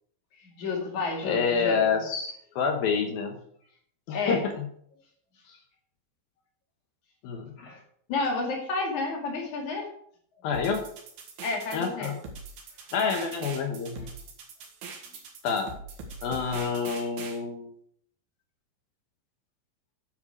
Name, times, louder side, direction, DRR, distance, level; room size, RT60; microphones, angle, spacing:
voice 1, 0.4-1.8 4.1-4.4 7.6-7.8 8.1-9.9 11.4-12.1, left 3 dB, 45° left, 0 dB, 2.9 m, -30 dB
voice 2, 1.2-3.4 4.1-4.7 5.5-5.6 7.2-7.5 10.4-10.8 11.7-12.2 12.9-14.1 15.4-15.7 16.2-17.7, left 5 dB, 75° left, 4 dB, 2.2 m, -28 dB
sound 1, 10.5-17.4, right 4 dB, 60° right, 3.3 m, -42 dB
10.5 x 8.2 x 5.0 m, 0.64 s
omnidirectional pair, 5.6 m